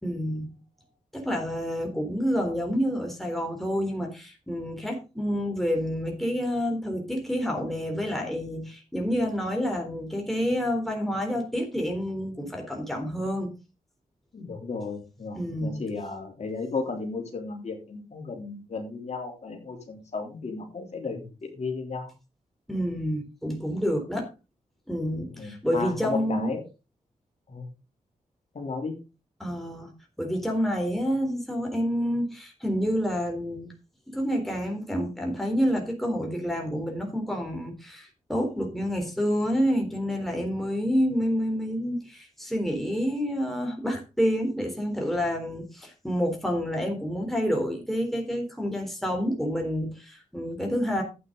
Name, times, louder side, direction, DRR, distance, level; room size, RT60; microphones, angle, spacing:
voice 1, 0.0-0.6 1.1-13.5 15.3-15.8 22.7-24.3 24.9-26.5 29.4-29.9 30.2-33.7 34.1-51.0, equal, ahead, 1 dB, 3.8 m, -28 dB
voice 2, 14.3-22.1 25.3-26.6 27.5-27.7 28.5-29.1, left 4 dB, 55° left, 1 dB, 3.6 m, -34 dB
11.5 x 8.9 x 4.0 m, 0.30 s
cardioid pair, 80°, 14 cm